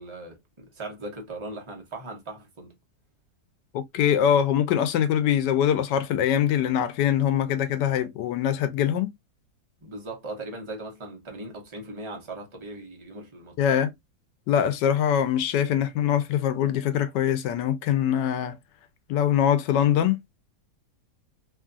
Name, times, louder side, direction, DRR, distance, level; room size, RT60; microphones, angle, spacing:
voice 1, 0.0-2.8 9.8-13.5, right 2 dB, 25° right, 0.6 m, -39 dB
voice 2, 3.7-9.1 13.6-13.9 14.5-18.6 19.1-20.2, left 9 dB, 85° left, 1.2 m, -23 dB
3.0 x 2.4 x 2.4 m
omnidirectional pair, 1.8 m